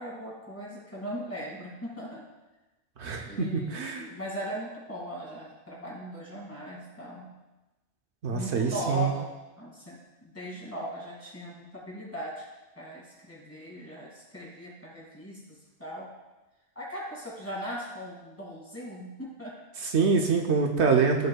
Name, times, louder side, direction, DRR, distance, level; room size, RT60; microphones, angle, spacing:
voice 1, 0.0-2.2 3.2-7.3 8.3-9.3 9.6-12.4 12.8-16.1 16.8-19.5, equal, 10° left, -5 dB, 2.2 m, -39 dB
voice 2, 3.0-4.1 8.2-9.1 19.8-21.3, right 5 dB, 75° right, 2 dB, 1.0 m, -25 dB
14.5 x 5.2 x 2.3 m, 1.1 s
omnidirectional pair, 1.2 m